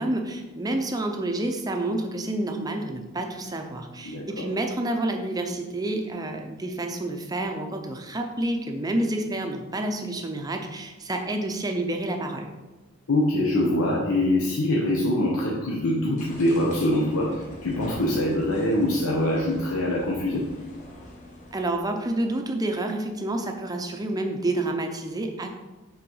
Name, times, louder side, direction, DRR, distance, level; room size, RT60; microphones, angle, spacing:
voice 1, 0.0-12.5 21.5-25.5, right 1 dB, 15° right, 4 dB, 0.6 m, -29 dB
voice 2, 4.0-4.5 13.1-20.4, left 1 dB, 90° left, -3 dB, 0.9 m, -24 dB
sound 1, 16.2-22.2, left 1 dB, 35° left, 1.4 m, -43 dB
5.7 x 3.9 x 5.4 m, 1.1 s
head